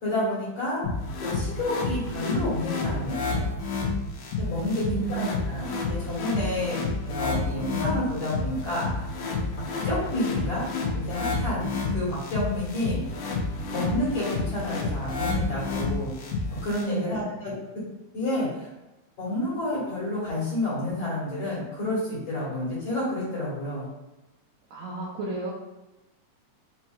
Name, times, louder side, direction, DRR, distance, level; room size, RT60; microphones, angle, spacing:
voice 1, 0.0-0.9 1.2-3.5 4.4-4.8 5.1-9.0 9.8-10.7 10.9-13.0 13.7-16.1 16.6-17.5 18.1-18.7 19.2-23.8, left 1 dB, 50° left, -7 dB, 2.2 m, -29 dB
sound 1, 0.8-16.8, left 3 dB, 75° left, 2.0 m, -30 dB
voice 2, 4.9-5.4 16.9-17.3 24.7-25.5, right 4 dB, 80° right, -6 dB, 1.6 m, -32 dB
5.2 x 2.9 x 2.3 m, 1.0 s
omnidirectional pair, 3.7 m